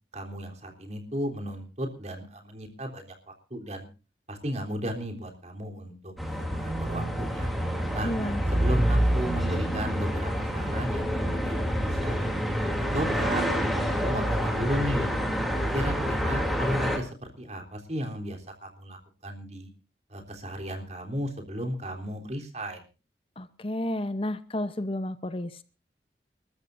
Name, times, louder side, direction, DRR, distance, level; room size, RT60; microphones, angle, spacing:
voice 1, 0.1-3.1 3.5-3.9 4.3-7.5 7.9-8.1 8.5-12.3 12.6-13.5 14.0-15.1 15.7-19.7 20.1-22.8, equal, 40° right, 3 dB, 3.6 m, -34 dB
sound 1, 6.2-17.0, equal, ahead, 2.9 m, -27 dB
voice 2, 8.0-8.4 23.4-25.6, left 1 dB, 30° left, 12 dB, 0.8 m, -31 dB
29.0 x 13.5 x 2.6 m, 0.34 s
head